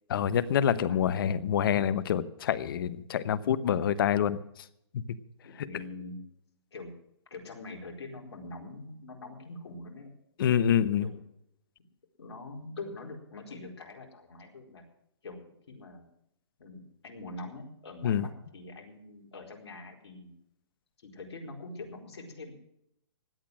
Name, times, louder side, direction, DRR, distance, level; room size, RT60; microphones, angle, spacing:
voice 1, 0.1-4.4 10.4-11.1 18.0-18.3, left 9 dB, 50° left, 16 dB, 1.0 m, -26 dB
voice 2, 0.8-1.1 5.4-6.2 6.7-6.9 7.3-10.1 11.0-11.2 12.2-14.8 15.2-16.1 16.6-20.3 21.0-22.5, left 2 dB, 70° left, 2 dB, 4.5 m, -44 dB
16.5 x 10.5 x 6.2 m, 0.76 s
hypercardioid pair, 145°, 14 cm